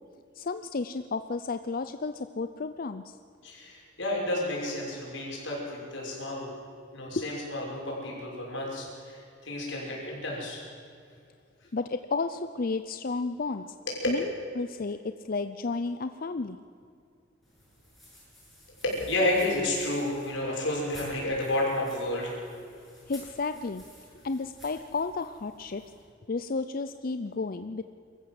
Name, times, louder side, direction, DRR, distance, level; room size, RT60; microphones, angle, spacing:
voice 1, 0.4-3.2 7.2-7.4 10.0-10.2 11.7-13.7 14.1-16.6 23.1-23.8 24.2-25.8 26.3-27.8, left 3 dB, 45° left, 10 dB, 0.5 m, -32 dB
voice 2, 3.4-6.5 6.9-10.6 13.9-14.1 18.8-22.4, left 1 dB, 70° left, -3 dB, 6.2 m, -31 dB
sound 1, 17.4-26.0, left 1 dB, ahead, 7.3 m, -53 dB
24.0 x 14.5 x 7.7 m, 2.4 s
head